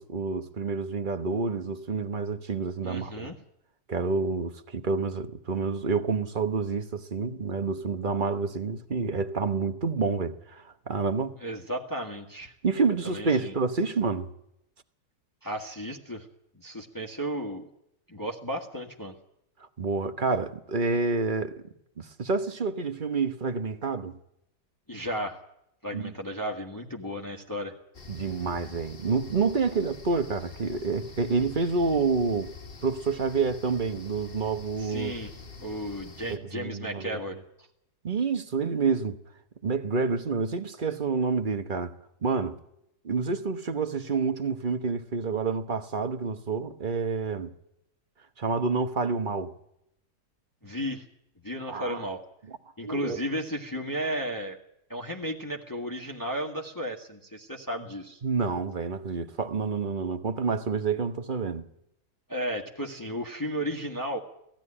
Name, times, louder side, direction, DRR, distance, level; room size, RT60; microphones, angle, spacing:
voice 1, 0.0-3.3 3.9-11.4 12.6-14.3 19.8-21.5 22.0-24.2 25.9-26.1 28.1-32.5 32.8-35.1 36.3-37.2 38.0-39.2 39.6-41.9 42.2-42.6 43.0-47.5 48.4-49.5 51.7-52.1 52.8-53.2 58.2-61.7, right 4 dB, 35° right, 1.1 m, -28 dB
voice 2, 2.8-3.3 11.4-12.5 13.0-13.5 15.4-16.3 16.5-17.7 18.1-19.1 24.9-25.4 25.8-27.7 34.8-37.4 50.6-51.0 51.4-52.2 52.8-54.6 54.9-58.2 62.3-64.2, equal, 15° left, 1.6 m, -34 dB
sound 1, 27.9-36.4, left 4 dB, 35° left, 1.6 m, -46 dB
18.0 x 15.0 x 9.8 m
omnidirectional pair, 1.7 m